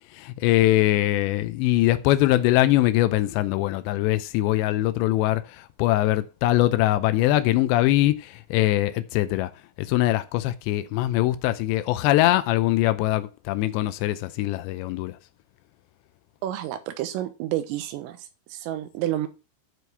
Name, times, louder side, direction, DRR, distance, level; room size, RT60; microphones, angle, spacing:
voice 1, 0.1-9.5 9.8-15.2, left 15 dB, 85° left, 2.5 m, -22 dB
voice 2, 16.4-19.3, right 13 dB, 85° right, 3.7 m, -30 dB
9.8 x 4.7 x 6.7 m
omnidirectional pair, 5.8 m